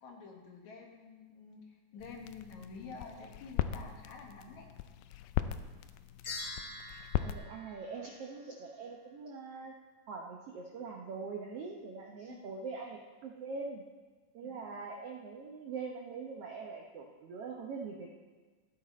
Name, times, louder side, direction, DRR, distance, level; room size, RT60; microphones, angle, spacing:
voice 1, 0.0-4.7 12.2-12.4 14.4-14.5, left 4 dB, 65° left, 1 dB, 2.5 m, -49 dB
sound 1, 2.0-7.4, left 12 dB, 90° left, 2.3 m, -38 dB
sound 2, 6.2-8.7, left 2 dB, 40° left, 2.2 m, -45 dB
voice 2, 7.2-9.7 10.1-13.8 14.3-18.1, right 4 dB, 70° right, 0 dB, 1.4 m, -43 dB
15.0 x 9.4 x 4.2 m, 1.4 s
omnidirectional pair, 3.9 m